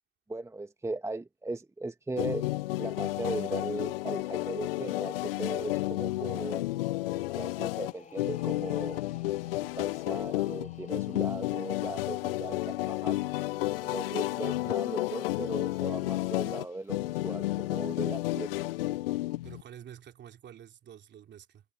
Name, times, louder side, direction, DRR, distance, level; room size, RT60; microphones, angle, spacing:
voice 1, 0.3-2.4 2.8-6.7 7.3-9.0 9.6-13.2 13.8-18.5, right 2 dB, 10° right, 1.4 m, -38 dB
sound 1, 2.2-19.6, left 17 dB, 75° left, 0.5 m, -32 dB
sound 2, 7.6-17.1, left 6 dB, 25° left, 5.3 m, -57 dB
voice 2, 19.4-21.6, right 9 dB, 40° right, 3.2 m, -49 dB
hypercardioid pair, 75°, 29 cm